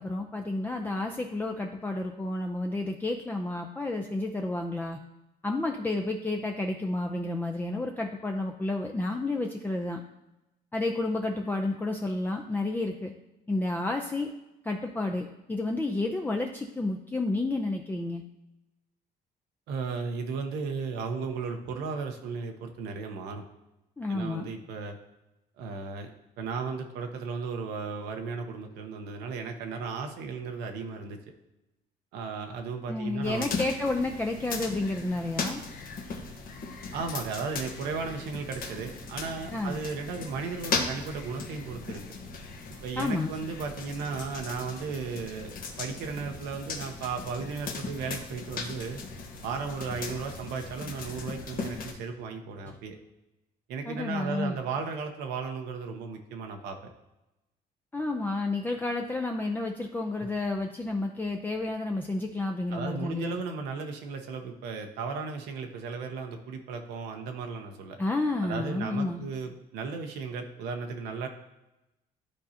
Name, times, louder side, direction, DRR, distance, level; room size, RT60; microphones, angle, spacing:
voice 1, 0.0-5.0 5.4-10.0 10.7-13.1 13.5-14.3 14.6-18.2 24.0-24.5 32.9-35.6 39.5-39.8 43.0-43.3 53.9-54.6 57.9-63.4 68.0-69.2, left 2 dB, 10° left, 2 dB, 0.5 m, -31 dB
voice 2, 19.7-23.4 24.1-25.0 25.6-26.1 26.4-31.2 32.1-33.5 36.9-42.0 42.8-45.5 45.8-49.0 49.4-53.0 53.7-56.8 62.7-68.0 68.4-71.3, right 5 dB, 85° right, 4 dB, 0.9 m, -35 dB
sound 1, 33.2-51.9, left 4 dB, 55° left, 1.1 m, -38 dB
11.5 x 3.9 x 2.8 m, 0.94 s
cardioid pair, 110°, 17 cm